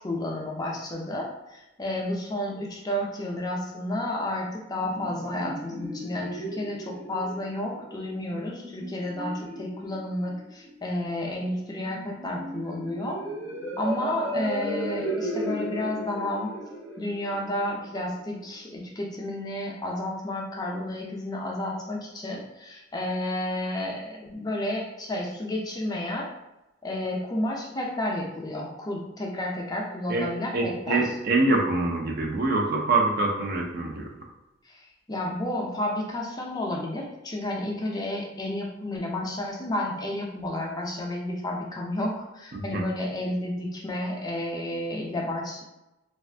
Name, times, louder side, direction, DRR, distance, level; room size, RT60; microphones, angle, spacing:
voice 1, 0.0-13.2 13.8-16.5 17.0-26.3 26.8-31.2 34.6-45.6, left 1 dB, 20° left, -2 dB, 0.4 m, -31 dB
sound 1, 4.7-18.4, right 1 dB, 85° right, 0.7 m, -36 dB
voice 2, 30.5-34.1 42.5-42.8, right 2 dB, 50° right, 0 dB, 0.5 m, -25 dB
2.5 x 2.4 x 3.3 m, 0.96 s
head